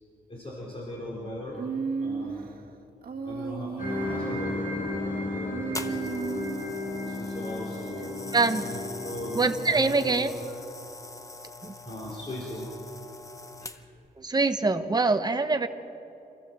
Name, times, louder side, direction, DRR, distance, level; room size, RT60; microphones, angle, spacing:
voice 1, 0.3-1.6 2.0-2.5 3.2-6.2 7.0-10.5 11.8-12.7 13.6-13.7, left 1 dB, 35° left, -5 dB, 4.5 m, -39 dB
Human voice, 1.5-2.5 3.0-4.6 5.5-6.7, right 5 dB, 65° right, 1.5 m, -34 dB
sound 1, 3.8-10.1, left 2 dB, 60° left, 5.4 m, -34 dB
sound 2, 5.7-14.1 14.8-15.0, left 2 dB, 20° left, 0.9 m, -43 dB
voice 2, 8.3-8.6 9.3-10.3 11.6-11.7 14.2-15.7, right 3 dB, 25° right, 7 dB, 1.1 m, -24 dB
27.0 x 14.5 x 7.6 m, 2.9 s
wide cardioid pair, 125°, 16 cm